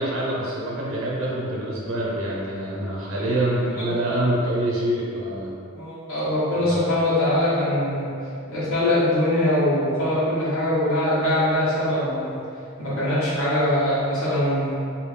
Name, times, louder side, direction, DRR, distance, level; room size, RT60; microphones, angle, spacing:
voice 1, 0.0-5.5 6.7-6.8, right 1 dB, 65° right, -5 dB, 0.6 m, -25 dB
voice 2, 5.7-8.1 8.5-12.4 12.8-14.7, left 1 dB, 65° left, -13 dB, 1.4 m, -22 dB
3.2 x 2.6 x 3.3 m, 2.5 s
head